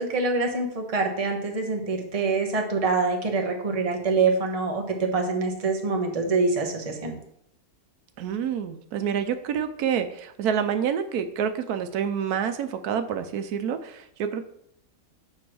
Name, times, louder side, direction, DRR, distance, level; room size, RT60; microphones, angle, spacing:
voice 1, 0.0-7.1, right 4 dB, 30° right, 2 dB, 0.9 m, -25 dB
voice 2, 8.2-14.5, right 8 dB, 85° right, 9 dB, 1.2 m, -28 dB
7.7 x 3.2 x 6.0 m, 0.73 s
omnidirectional pair, 1.6 m